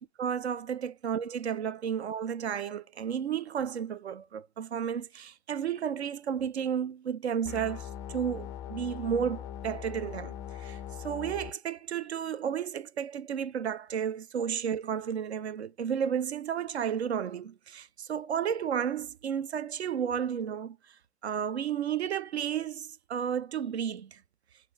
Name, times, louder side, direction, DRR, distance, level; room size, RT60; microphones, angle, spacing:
voice 1, 0.2-20.8 21.2-24.2, right 8 dB, 75° right, 0.6 m, -32 dB
sound 1, 7.4-11.5, left 10 dB, 20° left, 0.3 m, -40 dB
5.9 x 2.6 x 3.1 m
figure-of-eight pair, 105°, 33 cm